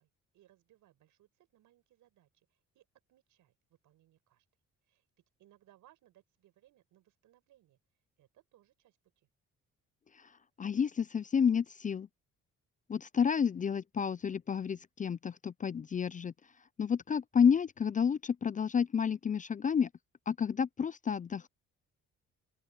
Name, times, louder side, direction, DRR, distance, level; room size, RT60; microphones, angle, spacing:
voice 1, 0.0-4.5 4.9-7.8 8.2-9.3, right 13 dB, 85° right, 6.2 m, -67 dB
voice 2, 10.6-12.1 12.9-16.3 16.8-19.9 20.3-21.5, left 7 dB, 25° left, 0.4 m, -30 dB
open air
cardioid pair, 90°, 30 cm